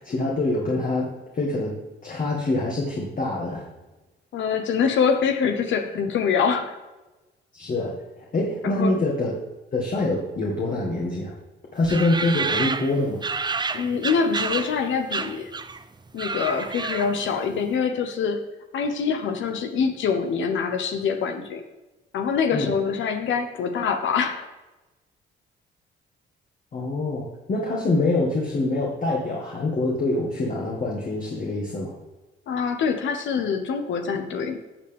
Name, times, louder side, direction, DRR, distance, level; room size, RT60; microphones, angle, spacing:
voice 1, 0.0-3.7 7.5-7.9 8.3-9.4 9.7-11.3 11.7-13.2 22.5-22.7 26.7-31.9, left 2 dB, 45° left, -2 dB, 2.1 m, -25 dB
voice 2, 4.3-6.8 8.6-9.0 13.7-15.5 16.1-18.4 18.7-21.7 22.1-24.5 32.5-34.6, left 6 dB, 75° left, 6 dB, 1.0 m, -25 dB
sound 1, 11.9-14.8 15.1-15.8 16.1-17.3, right 4 dB, 20° right, 0.6 m, -29 dB
13.5 x 7.0 x 3.6 m, 1.1 s
cardioid pair, 90°, 20 cm